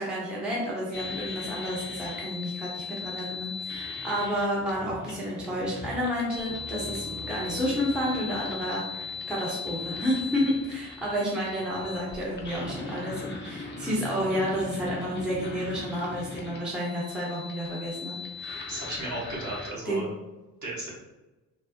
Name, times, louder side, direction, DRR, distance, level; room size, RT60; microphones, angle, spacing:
voice 1, 0.0-18.7 19.8-20.0, equal, ahead, -6 dB, 0.9 m, -30 dB
sound 1, 0.9-19.7, left 4 dB, 25° left, 0.6 m, -39 dB
Piano, 6.5-12.0, right 2 dB, 55° right, 0.9 m, -45 dB
voice 2, 18.4-20.1 20.6-20.9, right 1 dB, 40° right, -5 dB, 1.5 m, -35 dB
3.2 x 2.1 x 2.8 m, 1.1 s
hypercardioid pair, 45°, 46 cm